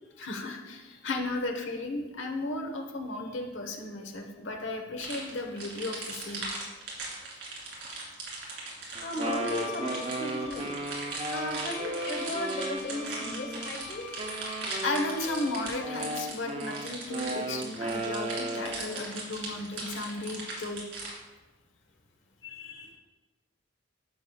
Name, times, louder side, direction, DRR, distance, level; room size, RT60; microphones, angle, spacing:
voice 1, 0.2-6.5 14.5-20.8, left 2 dB, 85° left, 4 dB, 1.0 m, -35 dB
sound 1, 5.0-21.1, right 3 dB, 70° right, 2.4 m, -39 dB
voice 2, 9.0-10.8 11.3-14.1 22.4-23.0, left 1 dB, 55° left, 1 dB, 1.4 m, -36 dB
Wind instrument woodwind instrument, 9.0-13.7 14.2-18.9, right 2 dB, 30° right, 0.5 m, -36 dB
Wind instrument woodwind instrument 2, 9.2-16.0, left 9 dB, 35° left, 0.5 m, -45 dB
11.0 x 6.5 x 2.3 m, 1.2 s
head